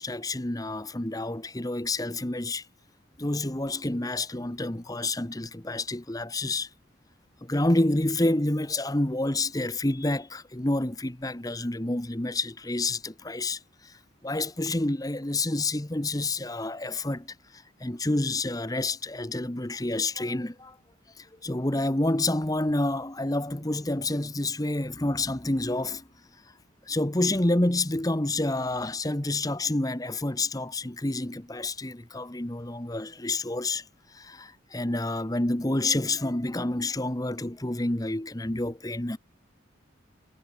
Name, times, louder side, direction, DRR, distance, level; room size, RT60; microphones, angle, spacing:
voice 1, 0.0-2.6 3.2-6.7 7.4-13.9 14.2-20.8 21.2-26.0 26.9-33.8 34.1-39.2, left 2 dB, 20° left, 1.1 m, -28 dB
head